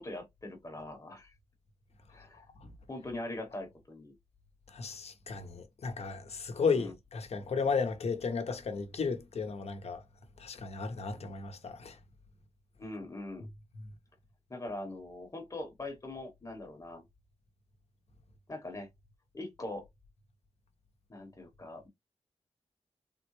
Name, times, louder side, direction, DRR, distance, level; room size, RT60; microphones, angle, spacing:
voice 1, 0.0-1.3 2.1-2.4 2.9-4.1 6.7-6.9 12.8-13.5 14.5-17.0 18.5-18.9 19.3-19.8 21.1-21.9, left 2 dB, 30° left, 1.0 m, -42 dB
voice 2, 4.7-10.0 10.4-12.0, left 5 dB, 70° left, 0.7 m, -34 dB
3.6 x 2.1 x 3.0 m
wide cardioid pair, 105°, 11 cm